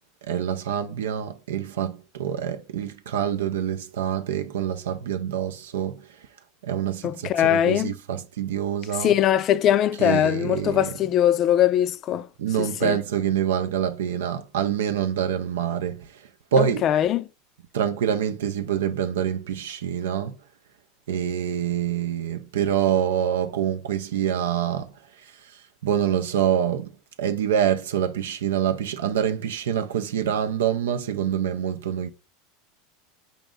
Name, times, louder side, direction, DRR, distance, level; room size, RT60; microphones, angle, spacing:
voice 1, 0.3-6.0 6.6-9.1 10.0-10.9 12.4-16.1 16.5-16.9 17.7-20.3 21.1-24.9 25.8-26.9 27.2-32.1, right 9 dB, 85° right, 0.4 m, -26 dB
voice 2, 7.0-8.0 9.0-12.3 12.6-13.0 16.6-17.3, left 11 dB, 45° left, 0.3 m, -21 dB
4.9 x 2.5 x 3.6 m
hypercardioid pair, 105°, 0 cm